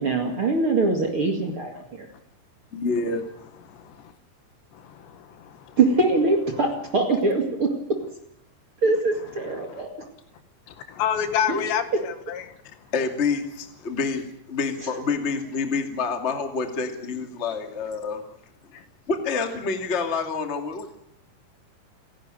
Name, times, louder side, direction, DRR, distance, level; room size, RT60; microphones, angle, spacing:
voice 1, 0.0-2.1 5.8-8.0 8.8-10.1 11.5-11.6, right 3 dB, 40° right, 2 dB, 2.2 m, -23 dB
voice 2, 2.7-3.2 12.9-18.2 19.1-21.0, left 4 dB, 25° left, 4 dB, 1.5 m, -27 dB
voice 3, 3.7-4.1 4.7-5.8 9.4-9.8 10.7-12.9 18.7-18.8, left 9 dB, 75° left, 9 dB, 3.7 m, -30 dB
29.0 x 12.0 x 9.2 m, 0.74 s
omnidirectional pair, 5.2 m